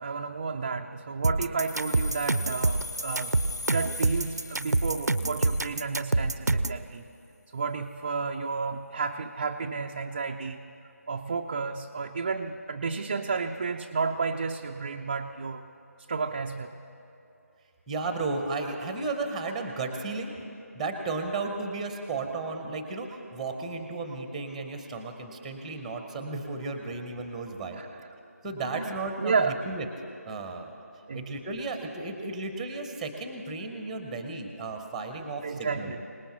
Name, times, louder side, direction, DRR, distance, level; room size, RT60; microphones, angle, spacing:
voice 1, 0.0-3.4 3.7-7.0 7.5-10.6 11.1-15.7 16.1-16.7 27.8-27.9 28.7-28.8 29.2-29.6 31.1-31.3 35.4-36.0, right 4 dB, 25° right, 2 dB, 0.3 m, -31 dB
sound 1, 1.2-6.8, right 2 dB, 85° right, 0.6 m, -26 dB
sound 2, 1.6-6.4, left 2 dB, 90° left, 0.9 m, -40 dB
voice 2, 17.9-20.3 20.7-27.8 28.4-29.9 30.3-30.7 31.1-35.9, right 3 dB, ahead, 5 dB, 0.7 m, -34 dB
26.0 x 19.0 x 2.9 m, 2.8 s
figure-of-eight pair, 160°, 9 cm